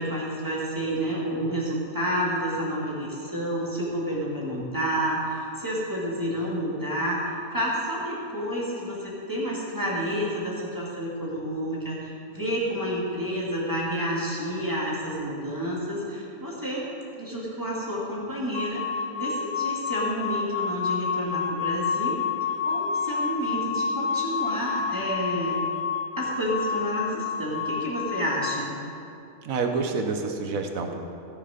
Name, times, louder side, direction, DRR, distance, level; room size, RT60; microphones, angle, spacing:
voice 1, 0.0-16.9 17.2-22.1 22.4-25.6 26.2-28.8, equal, 15° right, -6 dB, 2.3 m, -30 dB
sound 1, 18.5-28.7, left 6 dB, 90° left, 1.1 m, -29 dB
voice 2, 29.4-30.9, right 4 dB, 80° right, 4 dB, 1.4 m, -28 dB
17.0 x 6.8 x 5.1 m, 2.7 s
omnidirectional pair, 1.4 m